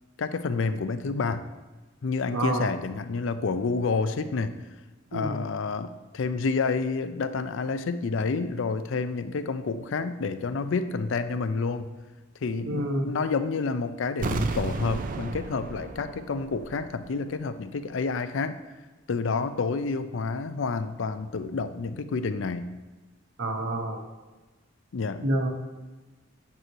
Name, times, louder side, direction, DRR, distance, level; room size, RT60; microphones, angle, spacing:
voice 1, 0.2-1.4 2.0-4.6 5.1-11.9 12.4-18.6 19.1-22.6 24.9-25.2, left 4 dB, 65° left, 11 dB, 0.4 m, -29 dB
voice 2, 2.3-2.7 5.1-5.3 12.6-13.1 23.4-24.0 25.2-25.5, right 1 dB, 80° right, 2 dB, 1.1 m, -27 dB
sound 1, 14.2-17.1 17.3-17.4, right 3 dB, 40° right, 0.4 m, -33 dB
8.9 x 3.1 x 6.5 m, 1.2 s
head